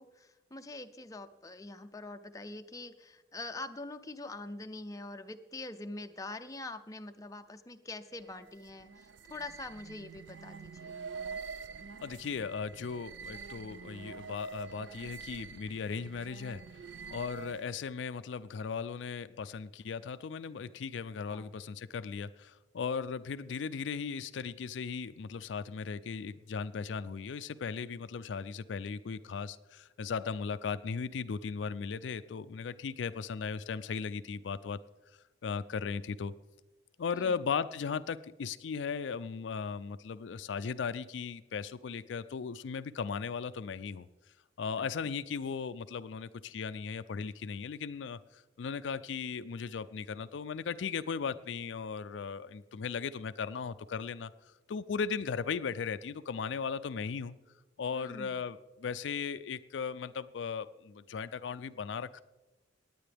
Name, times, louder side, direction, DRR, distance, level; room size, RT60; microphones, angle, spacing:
voice 1, 0.0-11.0 21.3-21.5 37.1-37.4 44.8-44.9 57.9-58.4, left 2 dB, 20° left, 7 dB, 0.5 m, -44 dB
sound 1, 8.1-17.8, right 5 dB, 75° right, 0.4 m, -46 dB
voice 2, 12.0-16.6 17.1-34.8 35.4-36.3 37.0-44.1 44.6-57.3 57.8-62.2, left 5 dB, 75° left, 13 dB, 0.4 m, -37 dB
19.0 x 9.3 x 3.4 m, 1.1 s
head